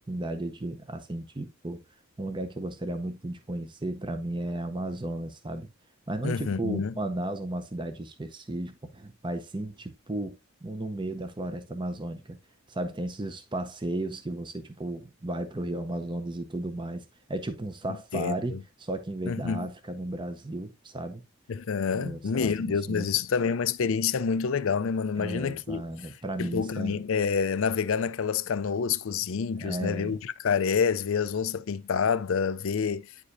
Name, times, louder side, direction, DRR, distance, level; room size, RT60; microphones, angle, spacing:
voice 1, 0.1-1.8 2.2-5.7 6.1-12.4 12.7-17.0 17.3-18.5 18.8-21.2 21.9-23.1 25.2-27.0 29.6-30.2, right 1 dB, 20° right, 0.7 m, -34 dB
voice 2, 6.2-6.9 18.1-18.6 19.2-19.7 21.5-25.8 26.4-33.1, left 6 dB, 60° left, 0.4 m, -28 dB
9.6 x 4.9 x 2.6 m
head